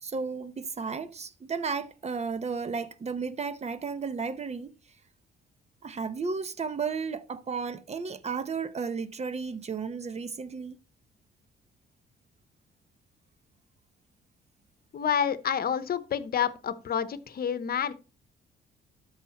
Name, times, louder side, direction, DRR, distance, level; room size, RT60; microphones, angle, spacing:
voice 1, 0.0-4.7 5.8-10.8, right 5 dB, 35° right, 0.9 m, -33 dB
voice 2, 14.9-17.9, left 8 dB, 50° left, 0.9 m, -28 dB
13.0 x 4.9 x 3.0 m
cardioid pair, 90°, 20 cm